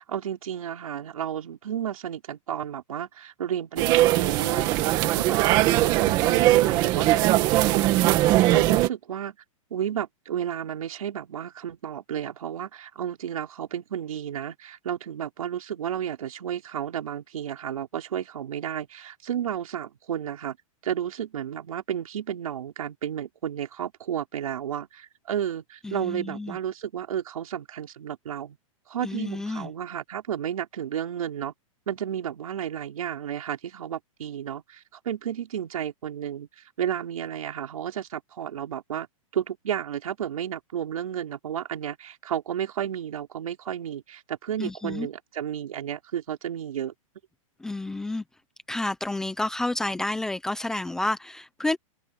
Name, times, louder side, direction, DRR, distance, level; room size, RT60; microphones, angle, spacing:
voice 1, 0.0-9.4 9.7-20.6 20.8-28.6 28.9-31.5 31.9-39.1 39.3-46.9, right 9 dB, 80° right, 5.1 m, -32 dB
sound 1, 3.8-8.9, right 16 dB, 25° right, 1.7 m, -20 dB
voice 2, 25.8-26.6 29.0-29.7 44.6-45.1 47.6-48.2 48.7-51.8, left 2 dB, 5° left, 0.7 m, -30 dB
open air
supercardioid pair, 175°, 18 cm